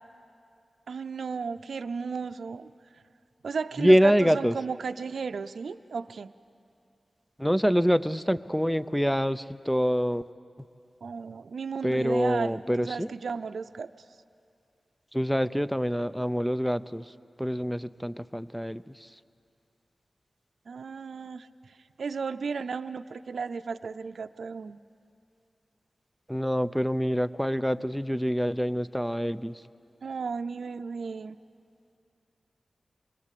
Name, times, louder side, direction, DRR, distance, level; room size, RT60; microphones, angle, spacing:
voice 1, 0.9-2.7 3.4-6.3 11.0-13.9 20.7-21.5 22.0-24.8 30.0-31.4, right 5 dB, 90° right, 10 dB, 0.5 m, -34 dB
voice 2, 3.8-4.5 7.4-10.2 11.8-13.1 15.1-17.1 17.4-19.1 26.3-29.6, equal, ahead, 14 dB, 0.5 m, -25 dB
25.5 x 21.0 x 8.4 m, 2.4 s
wide cardioid pair, 90°, 0 cm